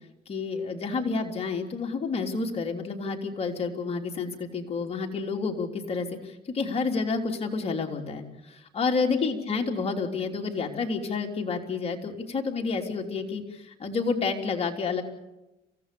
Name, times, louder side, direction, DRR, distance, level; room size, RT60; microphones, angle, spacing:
voice 1, 0.3-15.0, left 4 dB, 35° left, 2 dB, 3.5 m, -29 dB
27.5 x 17.0 x 7.0 m, 0.96 s
cardioid pair, 110°, 17 cm